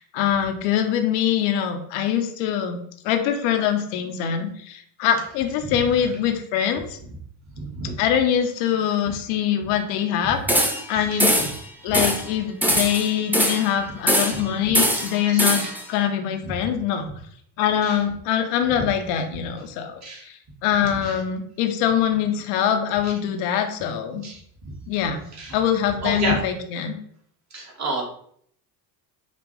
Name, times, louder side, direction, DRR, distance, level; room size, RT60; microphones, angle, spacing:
voice 1, 0.0-7.0 8.0-11.4 11.8-17.1 17.6-24.2 24.9-25.2 25.5-27.0, left 9 dB, 70° left, 6 dB, 0.9 m, -23 dB
voice 2, 7.6-8.0 9.0-9.1 10.2-10.3 10.9-11.5 12.7-12.8 14.3-14.7 15.2-15.7 16.4-16.5 17.8-18.0 20.0-20.3 21.0-21.2 23.0-23.1 24.2-24.8 25.3-25.6 26.0-26.4 27.5-28.0, right 2 dB, 35° right, -1 dB, 1.6 m, -31 dB
sound 1, 10.5-10.9 11.2-11.6 11.9-12.3 12.6-13.7 14.1-14.5 14.7-15.8, equal, 5° right, 0.5 m, -21 dB
5.3 x 2.5 x 3.1 m, 0.64 s
hypercardioid pair, 75°, 49 cm